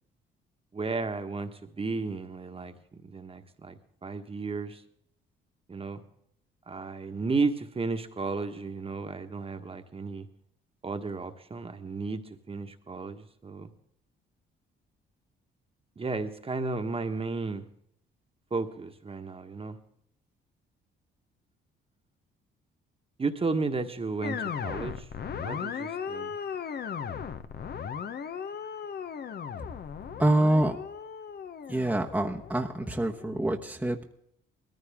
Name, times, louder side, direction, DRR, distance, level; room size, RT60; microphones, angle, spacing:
voice 1, 0.7-4.8 5.7-6.0 6.7-10.3 10.8-12.2 12.5-13.7 16.0-17.7 18.5-19.8 23.2-25.1 25.4-26.3, right 4 dB, 30° right, 7 dB, 1.5 m, -33 dB
sound 1, 24.2-33.5, left 7 dB, 55° left, 1.1 m, -37 dB
voice 2, 30.2-30.8 31.7-34.0, right 1 dB, 5° right, 1 dB, 1.2 m, -26 dB
20.5 x 14.5 x 3.7 m, 0.71 s
cardioid pair, 90°, 20 cm